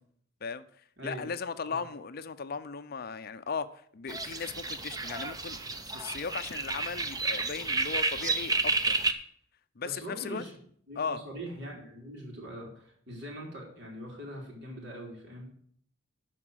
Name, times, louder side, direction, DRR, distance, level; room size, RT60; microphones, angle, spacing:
voice 1, 0.4-8.9 9.8-10.4 11.0-11.2, left 5 dB, 45° left, 12 dB, 0.5 m, -37 dB
voice 2, 1.0-1.3 1.7-1.8 9.8-10.5 10.9-15.5, equal, 55° right, -2 dB, 3.8 m, -42 dB
sound 1, 4.1-9.1, right 3 dB, 20° right, 0.6 m, -31 dB
12.0 x 4.5 x 7.8 m, 0.62 s
head